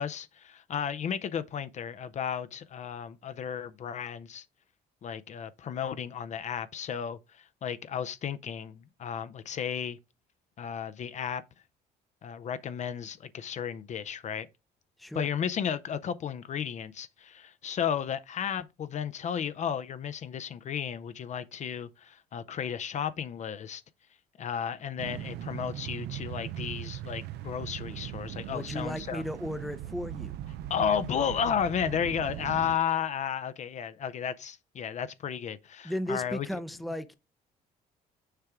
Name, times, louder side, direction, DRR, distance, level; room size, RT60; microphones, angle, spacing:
voice 1, 0.0-4.4 5.0-10.0 10.6-11.4 12.2-14.5 15.1-23.8 24.4-29.2 30.7-36.5, left 8 dB, 45° left, 0.5 m, -33 dB
sound 1, 25.0-32.8, right 13 dB, 80° right, 0.5 m, -39 dB
voice 2, 28.5-30.3 35.8-37.2, equal, ahead, 0.6 m, -35 dB
6.7 x 4.5 x 3.5 m
cardioid pair, 110°, 17 cm